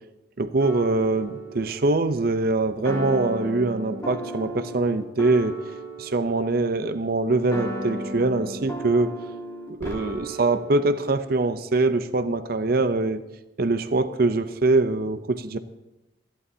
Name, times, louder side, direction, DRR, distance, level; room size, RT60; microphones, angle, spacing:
voice 1, 0.4-5.6 6.0-9.2 9.7-13.2 13.6-15.6, right 2 dB, 50° right, 10 dB, 0.6 m, -23 dB
sound 1, 0.6-11.3, right 1 dB, 15° left, 2.5 m, -35 dB
26.5 x 11.5 x 2.8 m, 0.95 s
head